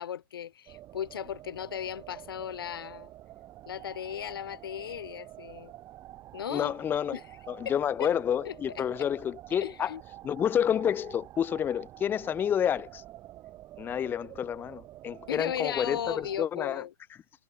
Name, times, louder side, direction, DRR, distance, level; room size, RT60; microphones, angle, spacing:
voice 1, 0.0-3.1 3.7-5.7 6.3-6.7 7.1-7.2 7.6-7.7 8.0-8.1 8.4-9.1 9.6-10.0 15.3-16.9, left 9 dB, 80° left, 2.4 m, -36 dB
sound 1, 0.7-16.4, right 14 dB, 30° right, 6.8 m, -48 dB
voice 2, 6.5-7.2 7.5-9.9 10.2-13.0 13.8-16.8, left 9 dB, 15° left, 1.0 m, -29 dB
hypercardioid pair, 145°, 12 cm